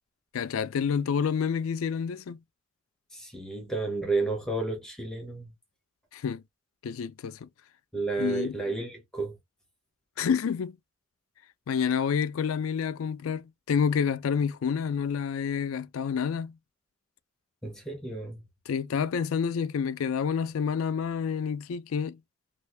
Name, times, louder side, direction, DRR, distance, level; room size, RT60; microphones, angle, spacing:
voice 1, 0.3-2.4 6.1-6.4 6.8-7.5 8.2-8.6 10.2-10.8 11.7-16.6 18.7-22.2, left 6 dB, 75° left, 0.4 m, -28 dB
voice 2, 3.1-5.5 7.9-9.3 17.6-18.4, right 3 dB, 5° left, 0.9 m, -31 dB
3.4 x 2.5 x 3.2 m
head